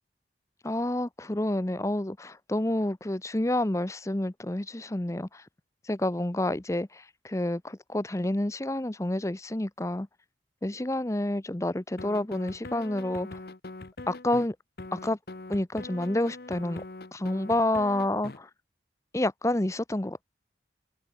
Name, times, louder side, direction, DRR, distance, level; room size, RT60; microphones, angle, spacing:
voice 1, 0.6-5.5 5.8-10.1 10.6-13.4 14.1-14.6 14.9-15.2 15.5-16.8 17.1-18.5 19.1-20.2, left 1 dB, 15° left, 0.7 m, -29 dB
sound 1, 12.0-14.5 14.8-18.4, left 2 dB, 60° left, 1.0 m, -42 dB
open air
head